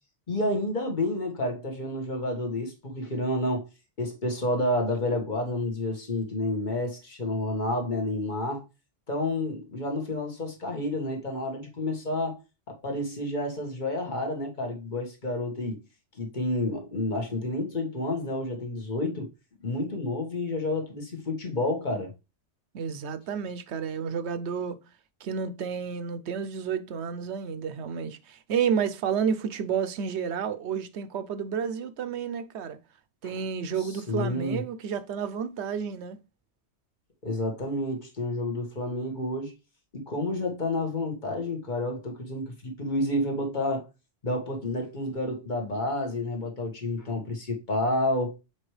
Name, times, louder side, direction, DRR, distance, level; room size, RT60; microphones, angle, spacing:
voice 1, 0.3-3.7 4.0-8.6 9.1-12.4 12.7-15.8 16.2-19.3 19.6-22.1 33.2-33.3 33.8-34.6 37.2-39.5 39.9-43.9 44.2-48.3, left 1 dB, 40° left, 1.7 m, -30 dB
voice 2, 22.7-24.8 25.2-32.8 33.2-36.2, right 7 dB, 70° right, 1.0 m, -31 dB
7.4 x 4.7 x 3.2 m
omnidirectional pair, 1.2 m